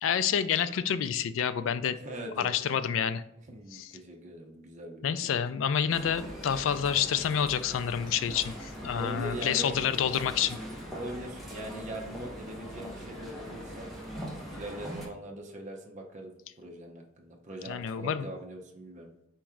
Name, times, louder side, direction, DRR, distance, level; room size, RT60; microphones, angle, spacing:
voice 1, 0.0-2.0 2.4-3.2 3.7-3.9 5.0-10.6 17.7-18.2, left 8 dB, 75° left, 12 dB, 0.3 m, -28 dB
voice 2, 1.9-2.5 3.5-5.4 8.9-9.8 10.9-13.9 14.3-19.1, right 1 dB, 40° right, 1 dB, 0.7 m, -41 dB
sound 1, 5.9-15.1, equal, ahead, 1.0 m, -41 dB
4.5 x 3.0 x 3.6 m, 0.80 s
head